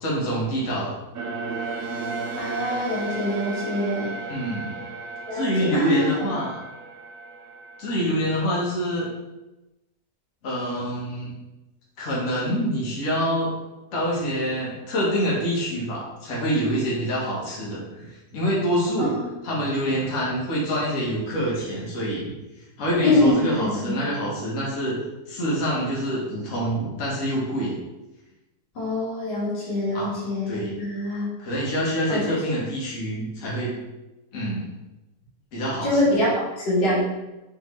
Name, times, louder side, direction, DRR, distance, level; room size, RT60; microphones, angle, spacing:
voice 1, 0.0-1.0 4.3-4.8 5.3-6.6 7.8-9.1 10.4-11.3 12.0-13.5 13.9-19.2 19.4-22.3 22.8-25.0 25.3-27.8 29.9-30.2 30.5-30.8 31.4-33.8 34.3-34.7 35.5-35.9, equal, 55° left, -6 dB, 1.4 m, -26 dB
sound 1, 1.1-8.4, right 3 dB, 70° right, 0.9 m, -34 dB
voice 2, 2.4-4.1 5.3-6.1 19.0-19.3 23.0-24.0 28.8-31.3 32.1-32.4 35.8-37.0, left 1 dB, 80° left, -7 dB, 2.0 m, -24 dB
3.7 x 3.4 x 3.1 m, 1.0 s
omnidirectional pair, 1.8 m